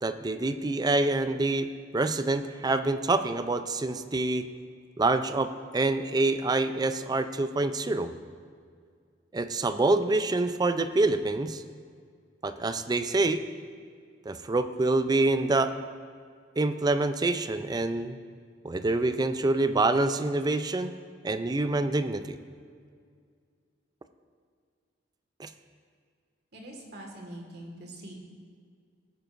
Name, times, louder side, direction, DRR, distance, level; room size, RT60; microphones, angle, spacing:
voice 1, 0.0-4.5 5.0-8.1 9.3-11.6 12.4-13.4 14.3-15.7 16.6-18.2 18.6-20.9 21.2-22.4 25.4-25.5, right 2 dB, 20° right, 10 dB, 0.4 m, -26 dB
voice 2, 26.5-28.1, right 1 dB, 60° right, 1 dB, 1.8 m, -43 dB
19.0 x 9.1 x 2.6 m, 2.1 s
head